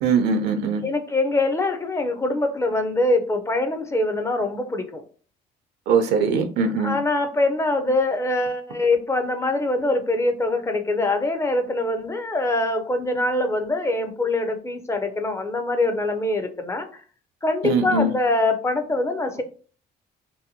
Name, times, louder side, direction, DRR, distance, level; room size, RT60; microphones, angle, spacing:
voice 1, 0.0-0.8 5.9-7.0 17.6-18.1, right 4 dB, 80° right, 0.5 m, -21 dB
voice 2, 0.8-5.0 6.8-16.9 17.4-19.4, left 2 dB, 15° left, 0.4 m, -23 dB
2.7 x 2.1 x 2.7 m
cardioid pair, 110°, 17 cm